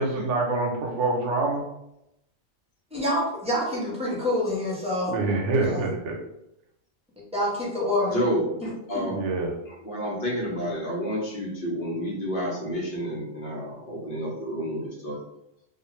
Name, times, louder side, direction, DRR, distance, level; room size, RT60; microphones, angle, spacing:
voice 1, 0.0-1.6 5.1-6.2 9.1-9.5, right 3 dB, 85° right, 1 dB, 1.0 m, -26 dB
voice 2, 2.9-5.1 5.6-5.9 7.3-8.2 8.9-9.1, left 1 dB, 5° right, -7 dB, 0.8 m, -27 dB
voice 3, 8.1-9.2 9.7-15.2, equal, 55° left, -5 dB, 0.9 m, -30 dB
2.4 x 2.4 x 3.0 m, 0.84 s
omnidirectional pair, 1.2 m